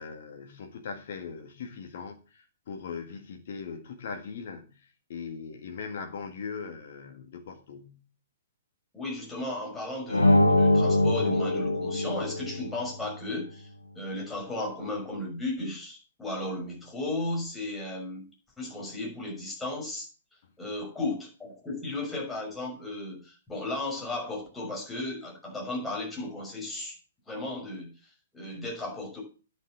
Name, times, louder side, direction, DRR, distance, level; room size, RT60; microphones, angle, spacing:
voice 1, 0.0-8.0, left 5 dB, 45° left, 2.0 m, -40 dB
voice 2, 8.9-13.7 13.9-18.3 18.6-20.0 20.6-27.0 27.3-29.2, left 2 dB, 5° left, 6.2 m, -35 dB
sound 1, 10.1-12.8, left 1 dB, 80° left, 1.2 m, -23 dB
10.0 x 7.2 x 7.6 m
figure-of-eight pair, 120°, 0 cm